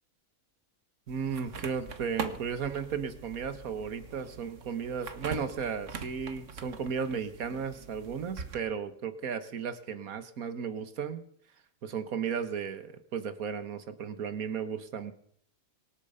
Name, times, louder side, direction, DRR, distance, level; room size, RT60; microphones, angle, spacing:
sound 1, 1.1-8.6, right 5 dB, 60° right, 1.6 m, -43 dB
voice 1, 1.1-11.2 11.8-15.1, right 6 dB, 80° right, 11 dB, 1.7 m, -35 dB
24.5 x 8.7 x 5.6 m, 0.64 s
omnidirectional pair, 1.5 m